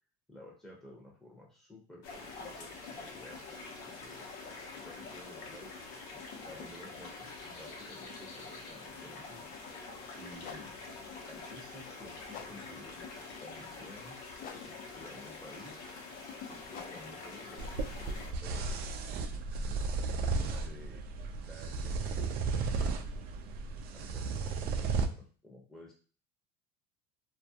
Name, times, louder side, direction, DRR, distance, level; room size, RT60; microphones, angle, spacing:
voice 1, 0.3-3.4 3.8-4.3 4.7-5.9 6.1-9.5 10.2-10.7 11.3-14.3 14.9-15.9 16.5-18.8 19.5-21.0 21.5-22.2 22.5-23.2 23.9-25.9, left 1 dB, ahead, -3 dB, 0.8 m, -53 dB
sound 1, 2.0-18.3, left 4 dB, 70° left, 0.8 m, -46 dB
sound 2, 9.6-9.7 10.3-19.2, left 7 dB, 45° left, 0.4 m, -53 dB
Stroking Corduroy Chair, 17.6-25.1, right 4 dB, 50° right, 0.4 m, -34 dB
2.3 x 2.2 x 2.7 m, 0.39 s
supercardioid pair, 105°, 20 cm